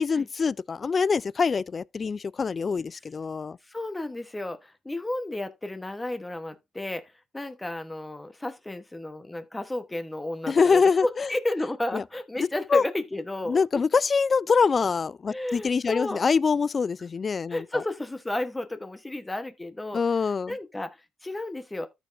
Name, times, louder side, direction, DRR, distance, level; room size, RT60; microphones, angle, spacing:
voice 1, 0.0-3.6 10.5-11.3 11.9-12.0 12.4-12.8 13.5-17.6 19.9-20.5, left 5 dB, 40° left, 0.4 m, -24 dB
voice 2, 3.6-13.7 15.3-16.3 17.5-20.0 20.5-21.9, left 1 dB, 15° left, 1.0 m, -32 dB
13.5 x 5.3 x 2.6 m
cardioid pair, 90°, 0 cm